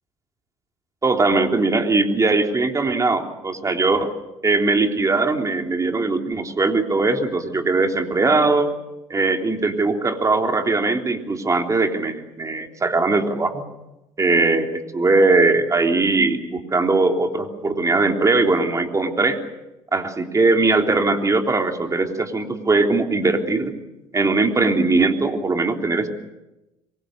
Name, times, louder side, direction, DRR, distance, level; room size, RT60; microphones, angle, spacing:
voice 1, 1.0-4.1 4.4-8.7 9.1-13.6 14.2-19.4 19.9-23.8 24.1-26.1, right 3 dB, 25° right, 4 dB, 3.5 m, -20 dB
26.5 x 23.0 x 6.8 m, 0.97 s
supercardioid pair, 80°, 14 cm